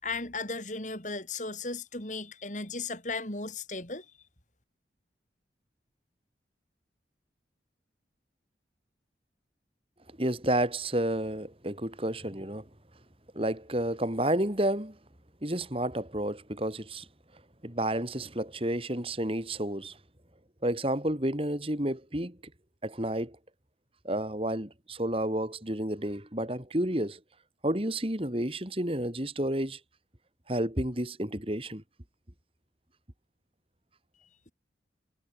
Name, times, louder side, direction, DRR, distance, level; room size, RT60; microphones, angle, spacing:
voice 1, 0.0-4.0, left 3 dB, 40° left, 4.7 m, -36 dB
voice 2, 10.2-12.7 13.3-15.0 15.4-17.1 17.6-20.0 20.6-22.4 22.8-23.4 24.0-27.2 27.6-29.8 30.5-31.8, right 1 dB, 30° right, 3.1 m, -30 dB
head